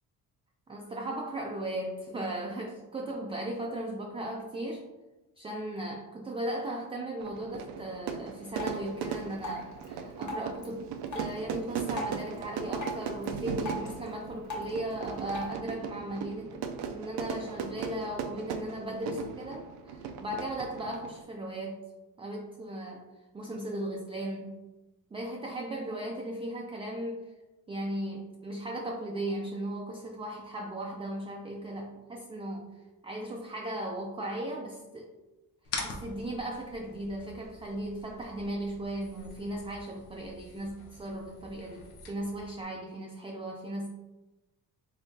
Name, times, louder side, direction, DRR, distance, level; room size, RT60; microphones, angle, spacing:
voice 1, 0.7-4.9 5.4-21.8 22.2-23.1 23.3-24.6 25.1-27.3 27.7-32.7 33.0-35.1 35.8-43.9, right 1 dB, 15° right, 0 dB, 0.3 m, -37 dB
Fire / Fireworks, 7.2-21.2, right 6 dB, 80° right, 0.5 m, -38 dB
Drip, 8.5-15.5, left 1 dB, 45° left, 1.1 m, -42 dB
sound 1, 35.6-42.6, left 3 dB, 85° left, 0.8 m, -44 dB
3.6 x 3.4 x 2.7 m, 1.1 s
cardioid pair, 100°, 39 cm